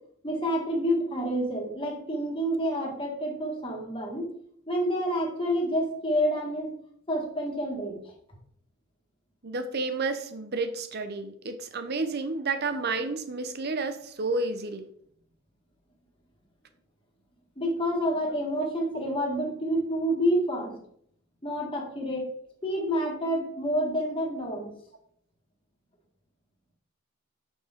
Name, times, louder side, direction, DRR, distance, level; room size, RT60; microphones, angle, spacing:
voice 1, 0.2-4.3 4.7-6.7 7.1-8.0 17.6-20.8 21.4-22.3 22.6-24.7, equal, 25° left, 0 dB, 1.9 m, -28 dB
voice 2, 9.4-14.8 18.6-18.7, right 3 dB, 50° right, 9 dB, 0.8 m, -31 dB
6.6 x 6.2 x 3.6 m, 0.65 s
head